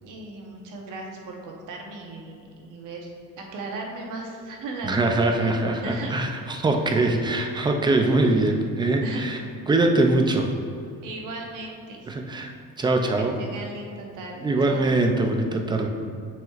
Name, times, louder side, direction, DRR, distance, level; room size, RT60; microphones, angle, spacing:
voice 1, 0.0-6.1 6.8-7.1 9.0-9.2 11.0-12.1 13.4-15.1, right 2 dB, 60° right, 0 dB, 1.1 m, -37 dB
voice 2, 4.8-9.4 9.7-10.5 12.1-12.5 12.8-13.4 14.4-15.9, right 2 dB, 15° right, 3 dB, 0.3 m, -22 dB
7.6 x 6.0 x 2.4 m, 2.4 s
cardioid pair, 155°, 35 cm